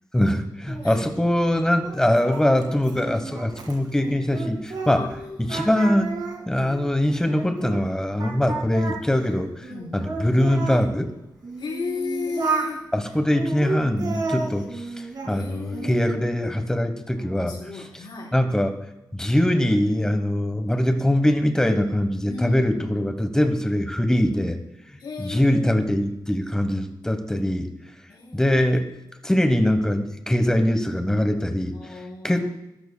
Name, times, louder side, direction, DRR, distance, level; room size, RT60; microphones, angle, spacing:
voice 1, 0.1-5.0 5.4-6.1 6.5-9.7 9.9-11.1 12.9-17.8 18.3-18.8 19.1-24.6 24.9-27.7 28.3-29.0 29.2-32.5, left 1 dB, 10° left, 7 dB, 1.1 m, -22 dB
Singing, 0.7-5.2 5.5-7.8 8.2-10.8 11.4-12.7 13.3-15.3 15.7-16.3, right 3 dB, 60° right, 2.0 m, -32 dB
voice 2, 4.9-5.7 9.7-10.1 11.6-12.8 15.2-16.0 17.1-18.3 22.3-23.0 25.0-26.0 28.1-28.5 31.7-32.5, left 4 dB, 90° left, -4 dB, 4.3 m, -35 dB
20.0 x 12.5 x 2.3 m, 0.90 s
wide cardioid pair, 170°, 8 cm